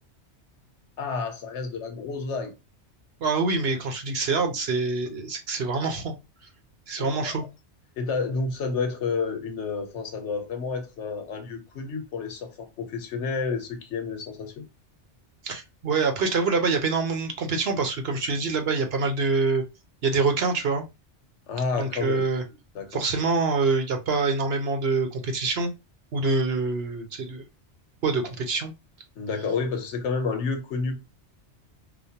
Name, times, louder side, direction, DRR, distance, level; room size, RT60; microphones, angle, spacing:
voice 1, 1.0-2.5 7.0-7.5 8.0-14.7 21.5-22.2 22.7-23.0 29.2-31.0, left 4 dB, 85° left, 1.2 m, -30 dB
voice 2, 3.2-6.1 6.9-7.5 15.4-19.6 20.0-20.8 21.8-22.4 22.9-25.7 26.1-27.4 28.0-28.7, right 4 dB, 65° right, 1.0 m, -25 dB
5.0 x 2.2 x 2.8 m
omnidirectional pair, 1.2 m